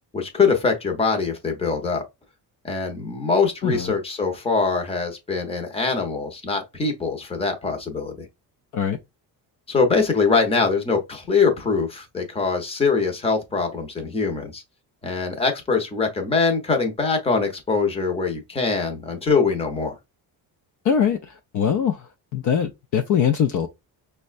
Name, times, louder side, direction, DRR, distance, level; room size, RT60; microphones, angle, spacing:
voice 1, 0.1-2.0 2.6-8.3 9.7-14.6 15.0-20.0, left 4 dB, 15° left, 0.7 m, -23 dB
voice 2, 20.8-22.0 22.3-23.7, left 8 dB, 50° left, 0.4 m, -22 dB
5.2 x 2.2 x 2.4 m
cardioid pair, 165°, 40 cm